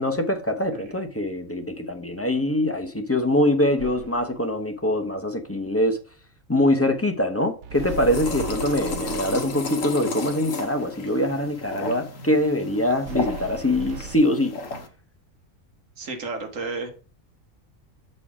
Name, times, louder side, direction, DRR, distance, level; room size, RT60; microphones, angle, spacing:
voice 1, 0.0-6.0 6.5-14.5, left 1 dB, 15° left, 0.5 m, -23 dB
sound 1, 3.8-4.4 7.6-9.7 13.1-14.2, right 4 dB, 85° right, 1.1 m, -37 dB
sound 2, 7.7-14.9, left 3 dB, 70° left, 1.4 m, -33 dB
voice 2, 16.0-16.9, right 3 dB, 70° right, 1.6 m, -32 dB
7.1 x 4.3 x 4.8 m
omnidirectional pair, 1.4 m